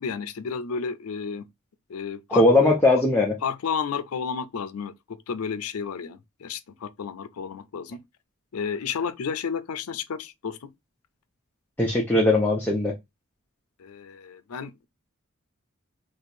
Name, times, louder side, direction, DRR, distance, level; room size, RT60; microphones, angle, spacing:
voice 1, 0.0-1.5 1.9-2.8 3.4-8.0 8.5-10.7 13.8-14.9, left 6 dB, 75° left, 0.5 m, -32 dB
voice 2, 2.3-3.4 11.8-12.9, left 2 dB, 10° left, 0.6 m, -19 dB
2.9 x 2.5 x 4.2 m
head